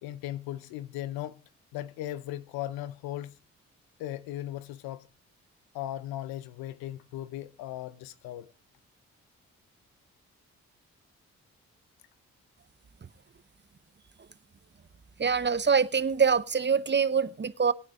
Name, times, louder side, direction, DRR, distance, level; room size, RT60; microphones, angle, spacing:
voice 1, 0.0-1.4 1.7-3.4 4.0-5.1 5.7-8.5, left 13 dB, 85° left, 0.7 m, -37 dB
voice 2, 15.2-17.7, right 6 dB, 30° right, 0.8 m, -24 dB
21.0 x 9.1 x 3.7 m
hypercardioid pair, 40°, 36 cm